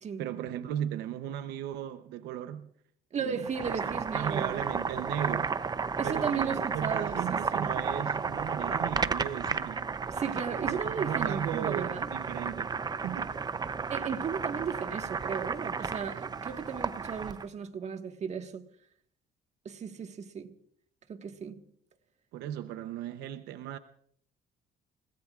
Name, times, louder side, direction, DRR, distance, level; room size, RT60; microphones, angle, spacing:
voice 1, 0.2-2.7 3.2-3.4 4.1-5.6 6.0-9.9 10.6-12.8 13.0-13.4 22.3-23.8, right 10 dB, 85° right, 0.8 m, -36 dB
voice 2, 3.1-4.7 6.0-7.8 10.1-12.1 13.9-18.7 19.6-20.5 21.1-21.7, right 7 dB, 40° right, 1.5 m, -35 dB
Boiling, 3.4-17.5, right 5 dB, 25° right, 0.6 m, -33 dB
29.5 x 17.5 x 2.4 m
cardioid pair, 110°, 17 cm